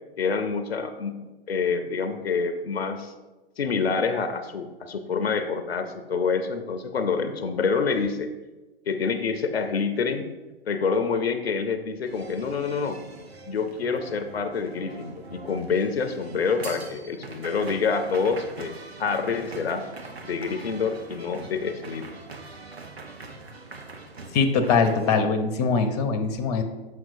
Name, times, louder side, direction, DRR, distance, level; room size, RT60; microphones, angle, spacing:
voice 1, 0.2-3.1 3.6-8.3 8.9-10.2 10.7-13.0 13.5-18.7 19.0-19.8 20.2-22.2, left 5 dB, 80° left, 9 dB, 0.6 m, -27 dB
sound 1, 12.0-25.2, right 3 dB, 85° right, 0.8 m, -42 dB
voice 2, 24.3-26.6, left 5 dB, 40° left, 8 dB, 0.7 m, -22 dB
7.2 x 6.0 x 2.6 m, 1.2 s
figure-of-eight pair, 110°, 31 cm